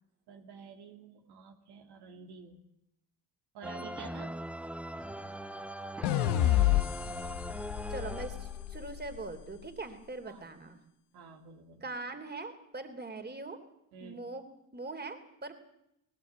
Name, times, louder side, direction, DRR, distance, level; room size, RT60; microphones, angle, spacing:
voice 1, 0.3-2.7 3.5-4.4 10.3-10.6 11.1-11.9 13.9-14.2, right 5 dB, 75° right, 4 dB, 2.5 m, -50 dB
sound 1, 3.6-8.9, right 1 dB, 5° right, 1.0 m, -41 dB
voice 2, 3.8-4.3 7.9-10.8 11.8-13.6 14.0-14.4 14.7-15.5, right 3 dB, 25° right, 9 dB, 3.4 m, -42 dB
sound 2, 6.0-9.3, left 14 dB, 80° left, 1.0 m, -29 dB
20.0 x 18.5 x 8.4 m, 0.81 s
supercardioid pair, 65°, 40 cm